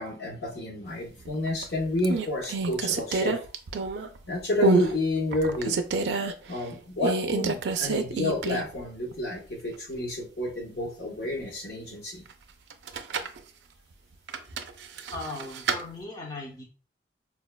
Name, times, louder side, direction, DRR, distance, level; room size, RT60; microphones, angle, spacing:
voice 1, 0.0-3.4 4.3-5.8 6.5-12.2, left 1 dB, 65° left, 1 dB, 0.9 m, -30 dB
sound 1, 1.3-1.6 2.0-4.2 4.6-4.9 5.3-6.3 7.0-8.8 9.1-9.2 12.7-13.4 14.3-15.8, right 4 dB, 70° right, 0.4 m, -27 dB
voice 2, 15.1-16.6, left 2 dB, 25° left, -2 dB, 0.6 m, -38 dB
4.5 x 2.2 x 2.2 m, 0.36 s
head